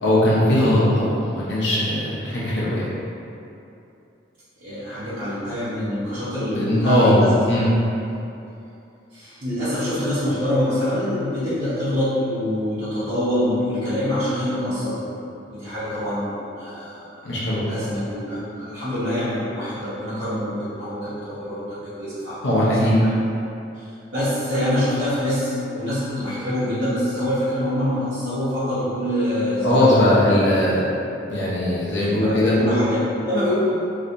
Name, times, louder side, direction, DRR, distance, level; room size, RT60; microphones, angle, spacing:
voice 1, 0.0-2.9 6.5-7.7 17.2-17.6 22.4-23.0 29.6-30.8 31.3-32.5, left 1 dB, 65° left, -8 dB, 0.8 m, -19 dB
voice 2, 4.6-7.3 9.1-15.0 15.5-17.0 17.7-22.6 23.0-23.1 23.7-30.2 30.8-30.9 32.2-33.5, left 1 dB, 50° right, -17 dB, 1.1 m, -25 dB
3.2 x 2.8 x 2.5 m, 2.7 s
head